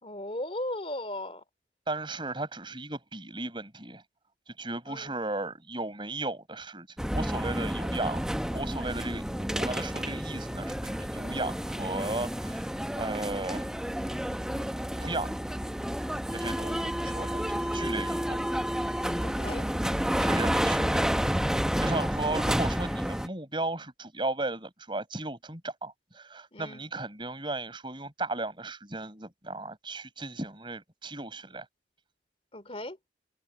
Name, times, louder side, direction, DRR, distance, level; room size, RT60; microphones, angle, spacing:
voice 1, 0.0-1.4 4.9-5.2 19.2-19.7 26.5-26.8 32.5-33.0, left 1 dB, 35° left, 3.0 m, -37 dB
voice 2, 1.9-4.0 4.5-6.9 7.1-12.7 12.9-13.7 15.0-15.3 16.3-18.4 20.2-21.0 21.8-31.7, right 2 dB, 25° right, 7.6 m, -35 dB
sound 1, 7.0-23.3, equal, 5° right, 0.8 m, -30 dB
head